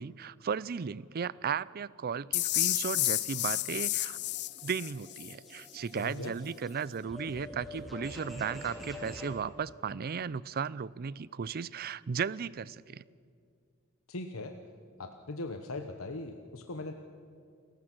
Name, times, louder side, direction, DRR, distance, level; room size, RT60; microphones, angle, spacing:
voice 1, 0.0-4.2 4.6-13.0, right 6 dB, 45° right, 20 dB, 0.4 m, -35 dB
sound 1, 2.3-5.3, left 17 dB, 55° left, 0.5 m, -31 dB
sound 2, 3.9-9.4, equal, ahead, 4.3 m, -46 dB
voice 2, 6.0-6.3 14.1-14.5 15.0-16.9, left 2 dB, 90° left, 6 dB, 1.0 m, -39 dB
28.5 x 15.0 x 6.1 m, 2.3 s
head